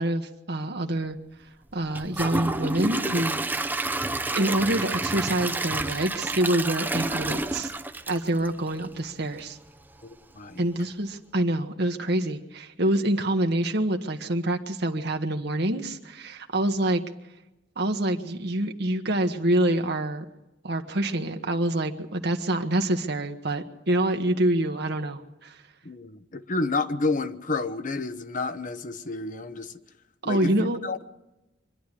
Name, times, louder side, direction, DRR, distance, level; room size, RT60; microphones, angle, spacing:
voice 1, 0.0-3.7 4.3-7.7 8.1-9.6 10.6-17.0 17.8-20.2 20.6-25.7 30.2-30.8, right 1 dB, 65° right, 4 dB, 1.3 m, -26 dB
Gurgling / Toilet flush / Trickle dribble, 1.9-9.0 9.4-9.5 10.0-10.1, right 2 dB, 10° right, 0.7 m, -29 dB
voice 2, 10.0-10.6 25.8-29.7 30.2-31.1, left 3 dB, 45° left, 11 dB, 1.0 m, -30 dB
24.5 x 11.5 x 10.0 m, 0.96 s
head